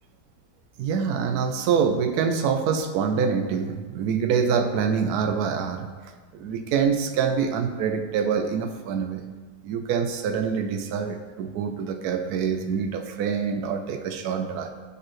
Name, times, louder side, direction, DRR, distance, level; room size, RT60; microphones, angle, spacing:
voice 1, 0.8-5.9 6.3-9.2 9.6-14.7, right 6 dB, 75° right, 7 dB, 1.1 m, -25 dB
6.9 x 6.8 x 3.1 m, 1.5 s
omnidirectional pair, 1.7 m